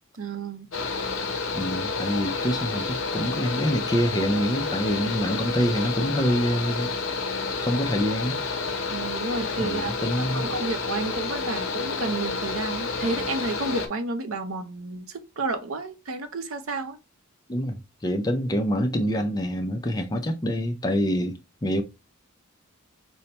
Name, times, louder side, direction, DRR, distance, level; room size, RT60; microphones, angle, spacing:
voice 1, 0.2-0.7 8.9-17.0, right 3 dB, 70° right, 0.6 m, -31 dB
Mechanical fan, 0.7-13.9, left 4 dB, 65° left, 0.8 m, -30 dB
voice 2, 1.5-6.9 7.6-8.4 9.6-10.5 17.5-21.8, equal, 20° left, 0.4 m, -26 dB
5.2 x 2.1 x 2.8 m
head